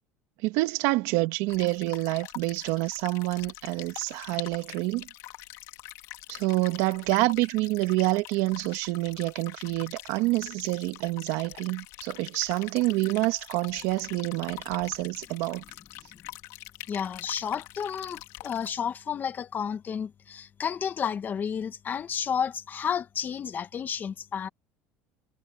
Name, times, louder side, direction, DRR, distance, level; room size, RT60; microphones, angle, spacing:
voice 1, 0.4-5.1 6.3-15.6, right 20 dB, 75° right, 2.0 m, -27 dB
sound 1, 1.5-18.7, left 19 dB, 70° left, 2.7 m, -44 dB
voice 2, 16.9-24.5, left 7 dB, 30° left, 1.5 m, -31 dB
supercardioid pair, 125°, 6 cm